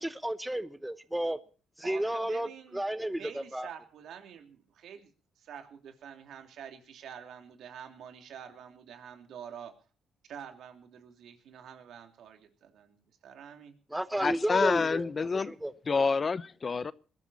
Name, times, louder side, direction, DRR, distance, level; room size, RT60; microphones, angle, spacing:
voice 1, 0.0-1.4 1.8-2.5 2.7-3.7 13.9-16.0, right 1 dB, 5° right, 1.0 m, -32 dB
voice 2, 1.8-2.9 3.2-5.1 5.4-9.7 10.3-13.7, right 8 dB, 75° right, 2.9 m, -47 dB
voice 3, 14.2-15.5 15.9-16.9, left 4 dB, 35° left, 0.8 m, -28 dB
21.0 x 13.0 x 4.2 m
cardioid pair, 90°, 0 cm